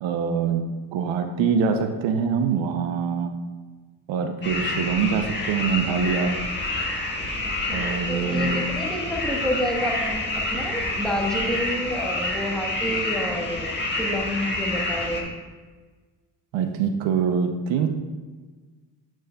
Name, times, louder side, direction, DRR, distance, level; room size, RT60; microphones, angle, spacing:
voice 1, 0.0-0.6 0.9-3.3 4.1-6.4 7.7-8.7 16.5-17.9, right 6 dB, 70° right, 6 dB, 0.7 m, -24 dB
sound 1, 4.4-15.2, left 2 dB, 20° left, 1.4 m, -28 dB
voice 2, 7.7-15.3, equal, ahead, -1 dB, 1.2 m, -29 dB
8.4 x 6.1 x 2.3 m, 1.4 s
supercardioid pair, 80°, 47 cm